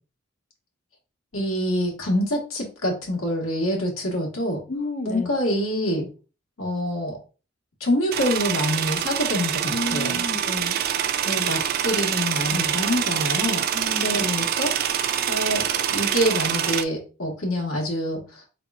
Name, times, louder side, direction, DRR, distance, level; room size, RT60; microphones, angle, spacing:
voice 1, 1.3-4.6 5.0-6.1 6.6-7.2 7.8-10.2 11.2-13.6 14.0-14.7 15.3-18.5, equal, 80° left, 1.6 m, -26 dB
voice 2, 4.7-5.3 9.7-10.8 12.5-12.8 13.7-14.3, left 1 dB, 40° left, 0.5 m, -31 dB
sound 1, 8.1-16.8, right 9 dB, 45° right, 0.3 m, -25 dB
4.6 x 3.4 x 2.4 m
head